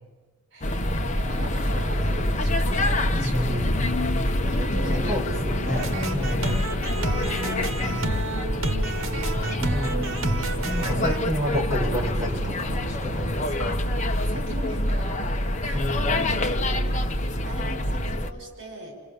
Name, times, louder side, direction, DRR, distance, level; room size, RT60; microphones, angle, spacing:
voice 1, 0.5-0.8 1.2-3.6 4.5-5.4 5.8-5.9 7.0-7.7 9.4-10.1 14.2-15.2 15.6-17.0 17.4-19.0, right 1 dB, 60° right, 3 dB, 6.2 m, -39 dB
sound 1, 0.6-18.3, left 1 dB, 35° left, 1.2 m, -26 dB
voice 2, 3.1-3.7 4.9-6.5 7.7-8.1 9.7-13.8 15.7-15.9, left 1 dB, 15° right, -3 dB, 6.7 m, -31 dB
sound 2, 5.8-11.2, right 2 dB, 85° right, 1.5 m, -30 dB
29.0 x 28.0 x 7.2 m, 1.3 s
head